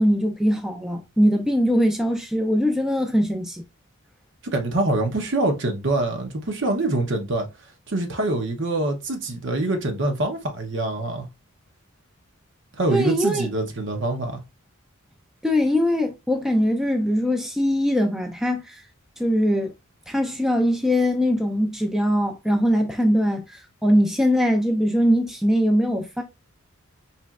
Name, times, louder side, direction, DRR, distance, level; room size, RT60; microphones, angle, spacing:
voice 1, 0.0-3.6 12.9-13.5 15.4-18.8 19.2-19.7 20.1-26.2, equal, ahead, 0.4 m, -21 dB
voice 2, 4.5-7.5 7.9-11.3 12.8-14.4, right 2 dB, 60° right, 0.8 m, -25 dB
4.3 x 3.0 x 2.3 m
head